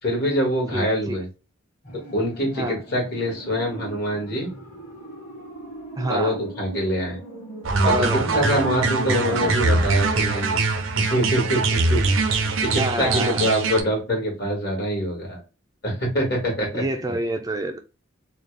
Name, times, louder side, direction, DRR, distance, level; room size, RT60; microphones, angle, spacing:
voice 1, 0.0-1.3 2.1-4.5 6.1-7.2 8.1-10.6 10.9-12.1 12.6-15.4 15.8-16.8, equal, 55° left, 2.0 m, -24 dB
voice 2, 0.7-1.2 2.5-2.8 6.0-6.4 7.8-8.7 12.8-13.5 16.7-17.8, right 1 dB, 20° right, 0.4 m, -27 dB
sound 1, 1.8-11.0 11.3-11.4, right 1 dB, 40° left, 1.6 m, -37 dB
sound 2, 7.6-13.8, right 3 dB, 85° right, 0.7 m, -22 dB
3.8 x 2.4 x 3.3 m
head